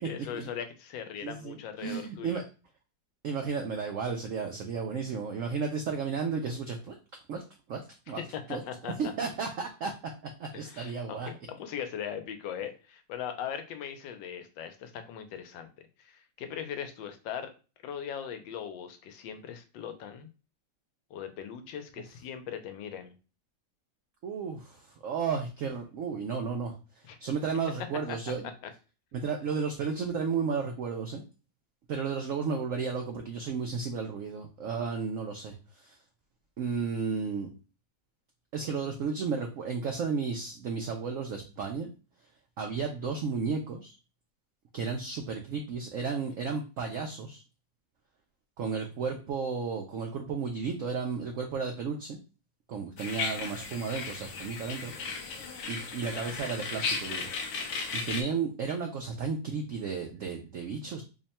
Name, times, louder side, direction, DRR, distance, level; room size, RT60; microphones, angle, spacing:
voice 1, 0.0-2.4 8.2-9.1 10.5-15.7 16.0-17.5 17.8-20.3 21.1-23.1 27.0-27.2 28.1-28.2, left 8 dB, 85° left, 8 dB, 1.4 m, -39 dB
voice 2, 1.2-2.4 3.2-6.9 7.3-7.4 7.7-7.8 8.1-8.2 8.5-8.6 9.0-9.9 10.4-11.3 24.2-28.5 29.1-31.2 31.9-36.0 36.6-37.5 38.5-41.9 42.6-44.0 44.7-47.4 48.6-52.2 52.7-54.9 55.7-57.3 57.9-61.0, right 5 dB, 85° right, 3 dB, 0.7 m, -33 dB
sound 1, 53.0-58.2, left 5 dB, 70° left, 0.9 m, -35 dB
3.5 x 2.2 x 4.1 m, 0.33 s
omnidirectional pair, 2.0 m